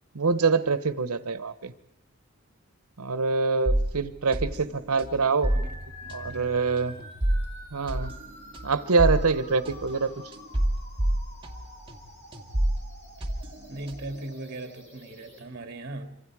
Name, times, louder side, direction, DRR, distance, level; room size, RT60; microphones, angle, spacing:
voice 1, 0.1-1.7 3.0-5.5 6.1-7.0 7.7-8.1 8.6-10.1, right 4 dB, 85° right, 0.9 m, -25 dB
sound 1, 3.7-12.0 12.3-14.2, right 1 dB, 25° right, 2.0 m, -30 dB
sound 2, 5.4-15.4, equal, 30° left, 4.7 m, -48 dB
voice 2, 6.0-6.8 13.7-16.2, right 2 dB, 45° right, 2.2 m, -39 dB
26.5 x 25.5 x 4.8 m
head